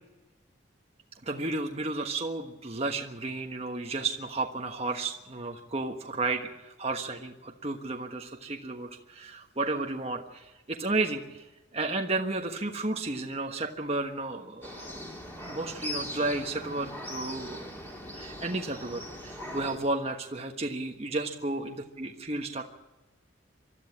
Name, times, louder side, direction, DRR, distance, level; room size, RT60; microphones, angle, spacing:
voice 1, 1.2-15.0 15.5-17.7 18.1-22.6, right 2 dB, 30° right, 3 dB, 1.4 m, -33 dB
sound 1, 14.6-19.8, left 1 dB, 10° left, 3.6 m, -40 dB
24.0 x 13.5 x 8.6 m, 1.1 s
head